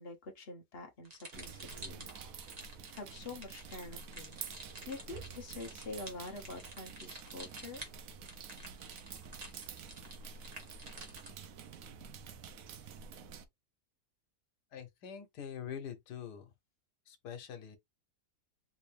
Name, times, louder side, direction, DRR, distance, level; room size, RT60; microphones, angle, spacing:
voice 1, 0.0-2.5 2.9-7.9 12.8-13.0, left 3 dB, 45° left, 1.0 m, -47 dB
sound 1, 1.1-11.5, right 2 dB, 30° right, 1.1 m, -50 dB
sound 2, 1.3-13.5, right 6 dB, 70° right, 1.0 m, -49 dB
voice 2, 14.7-16.5 17.1-17.8, left 8 dB, 80° left, 1.5 m, -44 dB
3.5 x 2.8 x 3.2 m
omnidirectional pair, 1.8 m